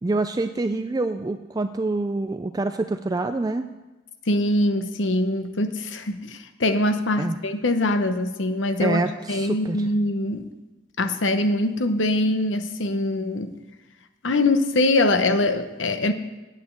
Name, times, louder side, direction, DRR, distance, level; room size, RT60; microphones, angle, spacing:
voice 1, 0.0-3.7 7.2-7.4 8.8-9.9, right 2 dB, 20° right, 9 dB, 0.4 m, -26 dB
voice 2, 4.3-9.0 9.3-10.5 11.0-13.6 14.2-16.1, left 2 dB, 85° left, 8 dB, 1.0 m, -23 dB
9.1 x 8.5 x 8.1 m, 1.1 s
head